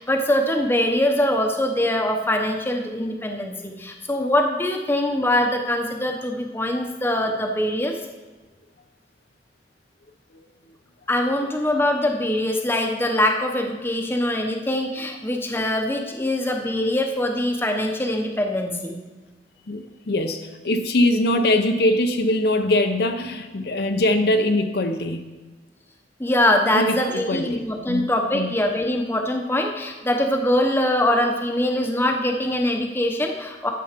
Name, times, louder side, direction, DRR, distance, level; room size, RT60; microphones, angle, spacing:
voice 1, 0.0-7.9 11.1-19.0 26.2-33.7, left 1 dB, 15° left, 3 dB, 0.9 m, -23 dB
voice 2, 19.7-25.3 26.7-28.5, left 1 dB, 60° left, 7 dB, 0.7 m, -22 dB
11.5 x 6.9 x 5.1 m, 1.3 s
head